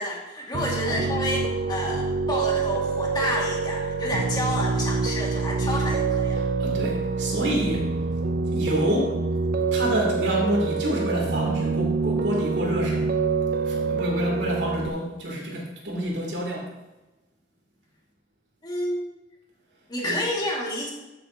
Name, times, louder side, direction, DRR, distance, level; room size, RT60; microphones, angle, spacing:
voice 1, 0.0-6.4 18.6-19.2 19.9-20.9, left 1 dB, 25° left, -2 dB, 2.0 m, -29 dB
Piano, 0.5-14.9, right 4 dB, 60° right, 0.5 m, -26 dB
voice 2, 0.6-1.1 6.6-7.9 8.5-9.2 9.7-13.1 13.6-16.7 20.0-20.2, equal, 90° right, -2 dB, 2.9 m, -27 dB
13.0 x 6.8 x 2.8 m, 1.0 s
head